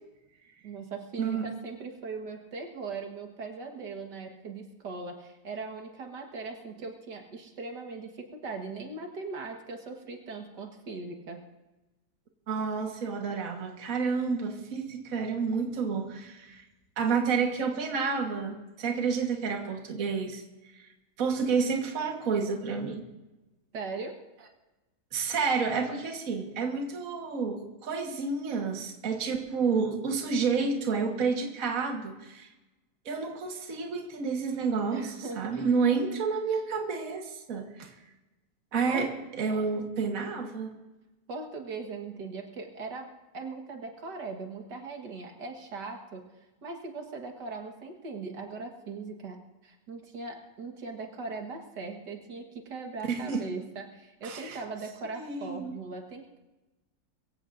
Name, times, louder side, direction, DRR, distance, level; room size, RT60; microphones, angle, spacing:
voice 1, 0.6-11.4 23.7-24.1 34.9-35.5 38.9-39.1 41.3-43.1 43.3-46.2 46.6-56.4, right 3 dB, 75° right, 3 dB, 2.1 m, -39 dB
voice 2, 12.5-16.6 17.0-20.4 21.2-23.0 25.1-32.5 33.1-37.9 38.7-39.1 39.4-40.7 53.1-53.5 54.2-54.6 55.2-55.8, right 5 dB, 55° right, 3 dB, 1.8 m, -30 dB
23.0 x 15.5 x 2.6 m, 1.1 s
omnidirectional pair, 1.8 m